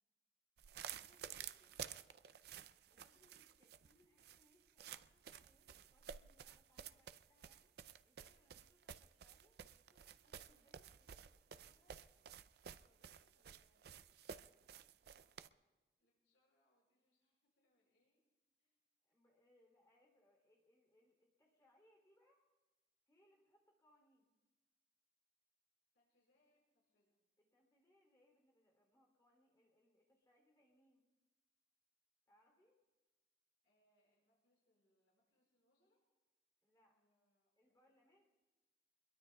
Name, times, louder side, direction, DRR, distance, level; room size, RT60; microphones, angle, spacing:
sound 1, 0.6-15.5, right 8 dB, 60° right, 0.4 m, -53 dB
voice 1, 0.8-1.9 2.9-7.8 8.0-11.7 19.0-22.4 23.1-24.3 27.4-31.0 32.3-32.8 36.6-37.0 37.6-38.2, left 1 dB, 20° left, 0 dB, 3.0 m, -75 dB
voice 2, 11.4-12.0 12.7-14.7 14.9-15.3 16.0-18.2 18.6-18.8 25.9-27.2 33.6-36.0 36.9-37.9, left 1 dB, 90° left, -3 dB, 5.1 m, -83 dB
24.5 x 22.0 x 2.3 m, 1.2 s
head